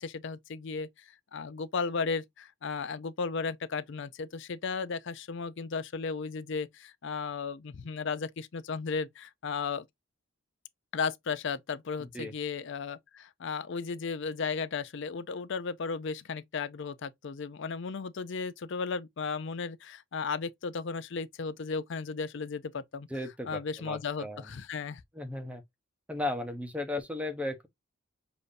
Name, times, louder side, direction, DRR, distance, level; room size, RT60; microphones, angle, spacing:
voice 1, 0.0-9.9 10.9-23.1 23.5-25.0, left 5 dB, 55° left, 0.4 m, -35 dB
voice 2, 12.0-12.3 23.1-24.4 25.1-25.6 26.1-27.7, left 2 dB, 5° right, 0.8 m, -35 dB
6.9 x 2.6 x 2.5 m
head